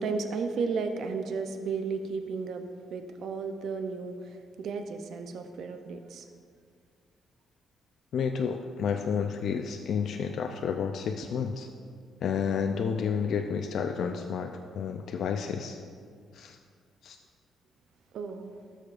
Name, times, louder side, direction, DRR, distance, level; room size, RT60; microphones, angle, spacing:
voice 1, 0.0-2.6 2.9-6.3 18.1-18.5, right 4 dB, 70° right, 6 dB, 0.5 m, -33 dB
voice 2, 8.1-11.7 12.2-15.8 16.3-16.6 17.0-17.2, left 6 dB, 65° left, 4 dB, 0.4 m, -30 dB
13.0 x 6.6 x 2.5 m, 2.1 s
cardioid pair, 90°, 0 cm